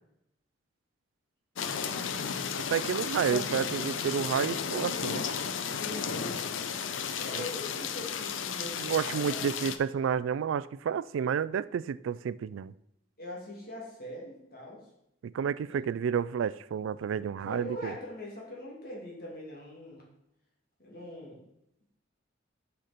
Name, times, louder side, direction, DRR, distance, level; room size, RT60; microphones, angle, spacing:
sound 1, 1.6-9.8, left 6 dB, 85° left, 0.6 m, -34 dB
voice 1, 1.8-2.3 3.2-3.7 5.0-5.2 5.6-6.4 7.2-9.5 13.2-14.8 15.6-15.8 17.5-20.0 20.8-21.5, left 1 dB, 50° left, 2.6 m, -42 dB
voice 2, 2.7-5.2 7.3-7.5 8.8-12.7 15.3-17.9, right 7 dB, 90° right, 0.3 m, -30 dB
6.5 x 5.8 x 5.1 m
head